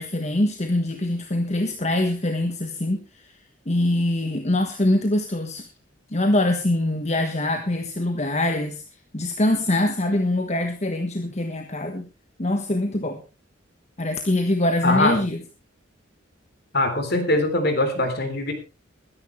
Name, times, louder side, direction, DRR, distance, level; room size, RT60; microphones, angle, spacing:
voice 1, 0.0-3.3 3.7-5.7 6.1-8.8 9.1-12.1 12.4-13.2 14.0-15.4, left 1 dB, 35° left, 6 dB, 1.3 m, -23 dB
voice 2, 14.8-15.2 16.7-18.5, left 2 dB, 55° left, 7 dB, 3.6 m, -22 dB
21.5 x 10.5 x 3.3 m, 0.29 s
head